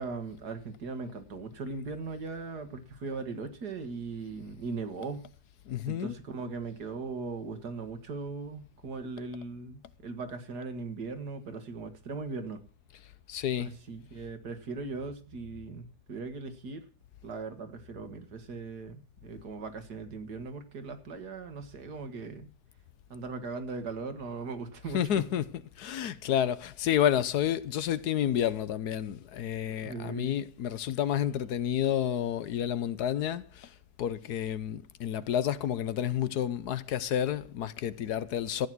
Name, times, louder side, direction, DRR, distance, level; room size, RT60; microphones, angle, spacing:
voice 1, 0.0-5.3 5.9-12.6 13.6-16.8 17.2-22.5 23.1-25.2 29.7-30.4, right 4 dB, 75° right, 2.2 m, -39 dB
voice 2, 5.7-6.1 13.3-13.7 24.9-33.7 34.0-38.7, left 10 dB, 70° left, 1.3 m, -30 dB
14.5 x 9.4 x 6.1 m
omnidirectional pair, 1.8 m